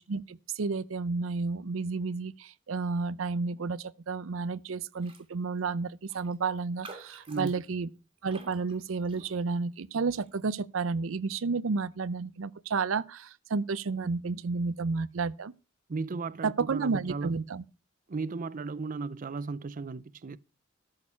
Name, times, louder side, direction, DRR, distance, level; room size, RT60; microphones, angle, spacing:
voice 1, 0.0-7.9 8.2-15.5 16.4-17.6, right 4 dB, 90° right, 0.6 m, -31 dB
Raindrop, 5.0-5.3 5.6-5.7 6.1-9.6 10.1-10.3, right 3 dB, 25° right, 2.1 m, -51 dB
voice 2, 15.9-17.3 18.1-20.4, right 4 dB, 45° right, 0.5 m, -35 dB
13.0 x 6.5 x 5.5 m
head